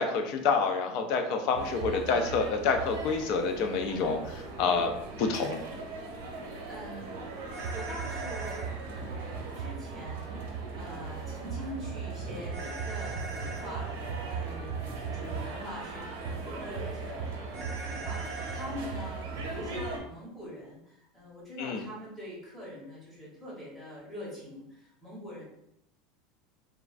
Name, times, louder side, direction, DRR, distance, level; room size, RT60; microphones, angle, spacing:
voice 1, 0.0-4.9 5.2-5.6 21.6-21.8, left 4 dB, 45° left, 5 dB, 0.3 m, -28 dB
sound 1, 1.5-20.0, right 4 dB, 85° right, 0.7 m, -38 dB
voice 2, 6.4-7.2 7.7-25.4, left 1 dB, 5° left, -8 dB, 0.9 m, -44 dB
sound 2, 7.5-8.6 12.5-13.7 17.5-18.7, right 2 dB, 30° right, 0.5 m, -41 dB
3.1 x 2.3 x 2.4 m, 0.81 s
supercardioid pair, 175°, 0 cm